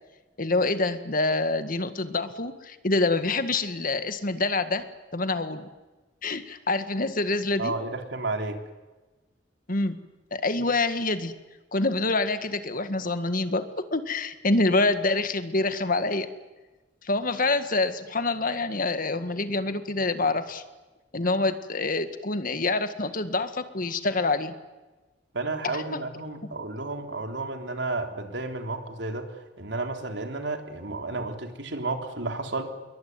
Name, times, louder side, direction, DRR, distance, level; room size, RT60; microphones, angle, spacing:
voice 1, 0.4-4.9 5.1-5.7 6.2-7.8 9.7-10.0 10.3-11.3 11.7-16.3 17.0-20.6 21.1-24.5 25.7-26.0, left 2 dB, 50° left, 10 dB, 1.8 m, -26 dB
voice 2, 7.6-8.6 25.3-32.7, right 2 dB, 75° right, 5 dB, 3.7 m, -32 dB
26.5 x 22.5 x 9.6 m, 1.2 s
head